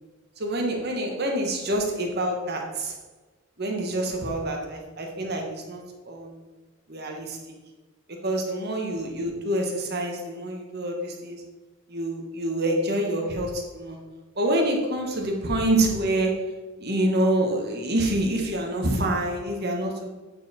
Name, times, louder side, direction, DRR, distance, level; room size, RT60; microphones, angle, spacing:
voice 1, 0.4-2.9 3.6-6.4 6.9-7.4 8.1-11.4 11.9-14.0 14.3-20.1, right 1 dB, 55° right, 1 dB, 1.4 m, -27 dB
8.7 x 4.5 x 4.3 m, 1.2 s
head